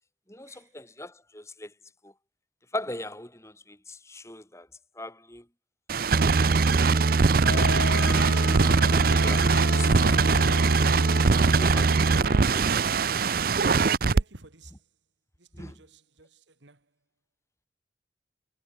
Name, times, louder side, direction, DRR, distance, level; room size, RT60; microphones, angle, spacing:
voice 1, 0.3-1.7 2.0-2.1 2.7-4.7 5.0-5.5 7.0-10.5 10.8-11.0 11.4-12.8 15.5-15.8, left 1 dB, 15° left, 4.1 m, -41 dB
sound 1, 5.9-14.2, right 4 dB, 50° right, 0.6 m, -21 dB
sound 2, 7.4-12.9, left 3 dB, 85° left, 2.0 m, -36 dB
voice 2, 12.2-12.8 14.1-14.8 15.4-16.8, right 2 dB, 75° right, 2.4 m, -51 dB
head